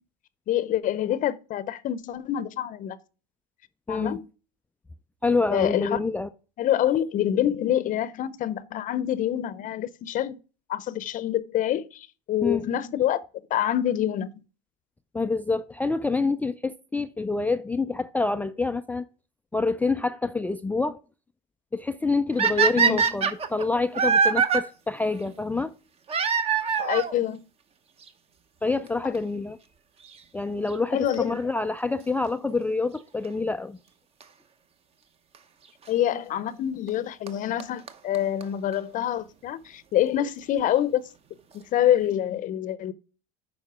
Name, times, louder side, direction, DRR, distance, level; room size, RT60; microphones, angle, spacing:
voice 1, 0.5-3.0 3.9-4.3 5.5-6.0 6.6-10.4 10.7-13.2 13.5-14.3 22.7-23.3 26.8-27.4 29.0-29.1 30.9-31.4 35.9-41.0 41.5-42.9, left 11 dB, 40° left, 0.7 m, -26 dB
voice 2, 3.9-4.2 5.2-6.3 12.4-12.7 15.1-19.0 19.5-21.0 21.7-25.7 28.6-29.6 30.3-33.8, left 3 dB, 10° left, 0.3 m, -27 dB
sound 1, 22.4-24.6 26.1-27.1 28.1-28.2 28.9-29.0 29.1-29.2 31.1-31.4 34.2-34.3 35.3-35.4 36.9-37.0 37.3-37.4 37.6-37.7 37.9-38.0 38.1-38.2 38.4-38.5 38.7-38.8, right 6 dB, 30° right, 1.0 m, -23 dB
9.2 x 5.4 x 5.0 m
supercardioid pair, 120°, 21 cm